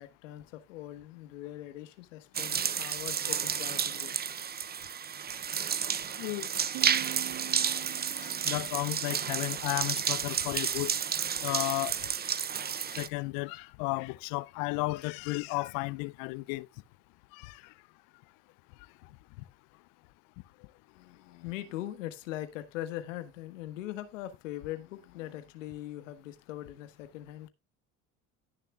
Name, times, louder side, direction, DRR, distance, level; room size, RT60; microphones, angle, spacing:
voice 1, 0.0-4.2 20.9-27.5, left 14 dB, 80° left, 1.4 m, -41 dB
sound 1, 2.3-13.1, right 7 dB, 25° right, 0.8 m, -31 dB
voice 2, 6.2-6.5 8.2-10.9 11.4-11.9 13.0-16.7 17.3-17.6, left 24 dB, 65° left, 0.6 m, -33 dB
Piano, 6.7-10.2, right 24 dB, 65° right, 1.1 m, -46 dB
17.0 x 6.6 x 2.2 m
hypercardioid pair, 75°, 37 cm